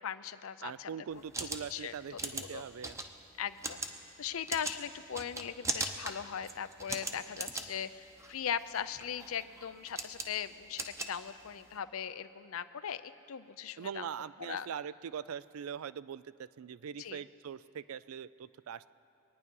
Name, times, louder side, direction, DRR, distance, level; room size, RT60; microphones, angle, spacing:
voice 1, 0.0-0.9 1.7-1.9 2.4-2.6 3.4-3.8 4.2-14.1 14.4-14.7 17.0-17.2, left 8 dB, 80° left, 13 dB, 0.5 m, -39 dB
voice 2, 0.6-3.0 13.8-18.9, right 7 dB, 85° right, 17 dB, 0.4 m, -42 dB
sound 1, 1.1-11.8, right 2 dB, 15° right, 0.7 m, -41 dB
24.0 x 9.6 x 5.4 m, 2.7 s
head